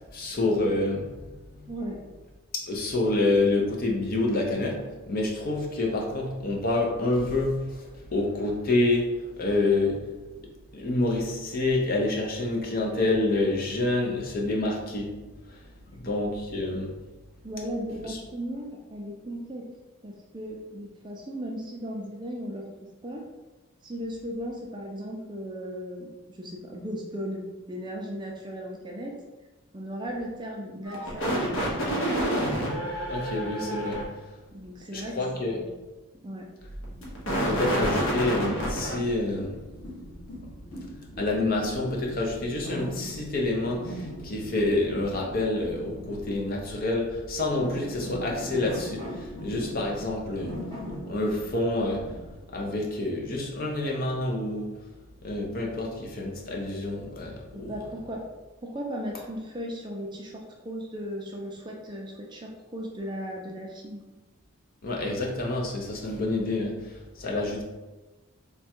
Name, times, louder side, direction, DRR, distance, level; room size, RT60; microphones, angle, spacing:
voice 1, 0.1-1.2 1.6-1.7 2.5-10.0 10.7-15.7 16.0-16.9 18.1-18.2 33.1-34.2 34.9-35.6 37.5-39.6 41.2-50.6 51.1-52.1 52.5-54.7 55.2-57.8 64.8-67.6, left 2 dB, 40° left, -1 dB, 0.6 m, -28 dB
voice 2, 1.7-2.0 17.4-19.6 20.0-22.7 23.0-23.2 23.8-29.1 29.7-32.0 34.5-35.8 36.2-36.5 57.5-58.2 58.6-64.0, equal, 20° right, 0 dB, 0.4 m, -36 dB
sound 1, 30.8-34.0 36.8-39.0, equal, 65° left, 0.9 m, -28 dB
sound 2, 36.8-52.4, equal, 20° left, 1.0 m, -40 dB
3.4 x 2.2 x 4.3 m, 1.2 s
head